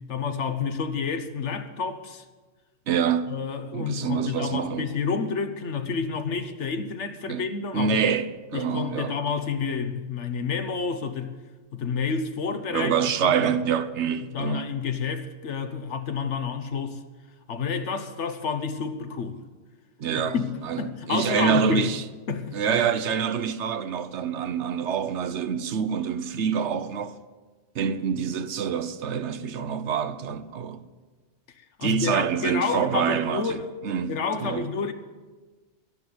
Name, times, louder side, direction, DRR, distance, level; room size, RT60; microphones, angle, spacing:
voice 1, 0.0-2.2 3.3-8.0 8.5-11.3 11.7-12.9 13.2-13.4 14.3-17.0 17.5-19.4 20.1-21.9 22.3-22.8 31.8-33.7 34.1-34.9, left 5 dB, 90° left, 1.4 m, -29 dB
voice 2, 2.9-3.4 3.7-4.9 7.3-7.5 7.7-9.1 12.7-14.7 20.0-20.4 20.6-22.0 22.5-27.1 27.7-30.8 31.8-33.6 33.8-34.1 34.4-34.6, right 7 dB, 85° right, 1.1 m, -26 dB
12.5 x 10.5 x 7.9 m
omnidirectional pair, 1.2 m